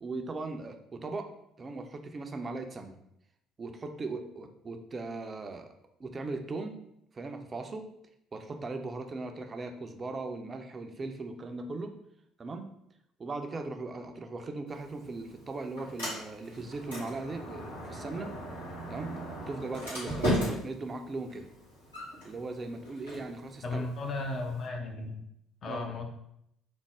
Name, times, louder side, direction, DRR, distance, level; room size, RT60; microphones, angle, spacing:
voice 1, 0.0-1.3 1.6-3.0 3.6-5.7 6.0-6.8 7.1-7.8 8.3-12.0 12.4-12.7 13.2-18.3 18.9-21.5 22.2-23.9 25.7-25.9, right 3 dB, 30° right, 6 dB, 0.4 m, -38 dB
Sliding door, 14.7-24.7, equal, 85° left, 1.4 m, -38 dB
voice 2, 23.6-25.2 25.6-26.0, left 2 dB, 45° left, 3 dB, 0.5 m, -35 dB
3.4 x 2.0 x 3.3 m, 0.76 s
figure-of-eight pair, 50°, 0 cm